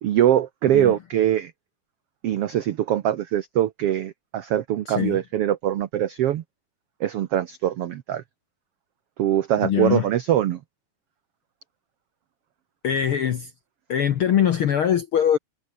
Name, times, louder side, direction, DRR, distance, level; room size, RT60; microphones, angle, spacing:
voice 1, 0.0-1.5 2.2-6.4 7.0-8.2 9.2-10.6, right 11 dB, 75° right, 1.3 m, -22 dB
voice 2, 4.9-5.2 9.6-10.1 12.8-13.5 13.9-15.4, left 9 dB, 65° left, 1.3 m, -22 dB
omnidirectional pair, 3.9 m